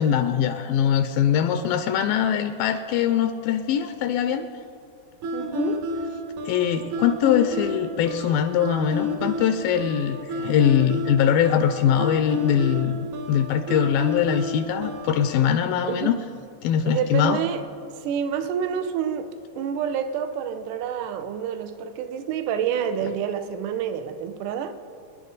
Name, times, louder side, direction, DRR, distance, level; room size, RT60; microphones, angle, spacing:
voice 1, 0.0-4.5 6.4-13.0 13.3-16.2 16.6-17.4, left 9 dB, 80° left, 9 dB, 2.2 m, -22 dB
sound 1, 5.2-15.3, left 2 dB, 60° right, 2.5 m, -30 dB
voice 2, 5.3-5.8 15.8-16.2 16.8-17.6 17.9-24.7, right 8 dB, 75° right, 9 dB, 2.0 m, -28 dB
24.5 x 10.5 x 4.0 m, 2.5 s
omnidirectional pair, 4.2 m